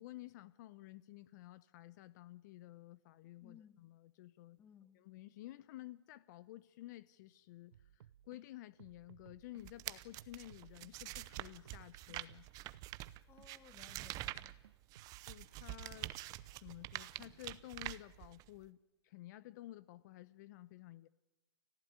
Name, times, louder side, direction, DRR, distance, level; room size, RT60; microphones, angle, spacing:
voice 1, 0.0-4.6 4.9-12.5 15.3-16.1 16.6-18.8 19.0-21.1, left 15 dB, 40° left, 0.9 m, -53 dB
voice 2, 3.4-3.9 4.6-5.0 13.3-14.6, left 8 dB, 15° left, 1.0 m, -61 dB
sound 1, 7.7-8.4 8.8-9.7 10.2-10.9 11.3-13.5 13.9-16.0 16.4-18.1, right 11 dB, 65° right, 0.7 m, -62 dB
sound 2, 9.6-18.6, right 17 dB, 25° right, 0.8 m, -47 dB
30.0 x 14.5 x 9.5 m
hypercardioid pair, 145°, 14 cm